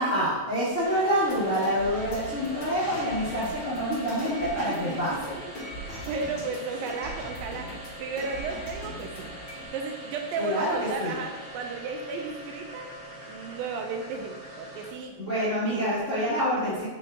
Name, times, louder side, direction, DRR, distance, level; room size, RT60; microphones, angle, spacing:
voice 1, 0.0-5.3 10.4-11.2 15.2-16.9, equal, 65° left, -11 dB, 0.7 m, -27 dB
sound 1, 0.8-15.1, right 1 dB, 30° right, 1.2 m, -43 dB
sound 2, 1.2-9.7, equal, 40° left, 1.7 m, -40 dB
voice 2, 4.8-5.2 5.8-7.7 8.0-9.3 9.7-12.9 13.3-15.2, right 4 dB, 80° right, 3 dB, 2.2 m, -34 dB
6.1 x 4.6 x 3.7 m, 1.2 s
omnidirectional pair, 4.3 m